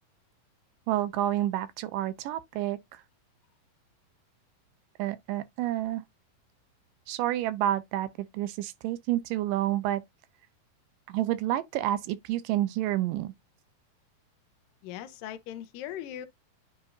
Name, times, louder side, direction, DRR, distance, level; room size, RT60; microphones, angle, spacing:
voice 1, 0.9-3.0 5.0-6.0 7.1-10.0 11.1-13.3, right 13 dB, 80° right, 2.2 m, -29 dB
voice 2, 14.8-16.3, left 11 dB, 80° left, 2.3 m, -39 dB
9.7 x 4.0 x 2.5 m
omnidirectional pair, 4.0 m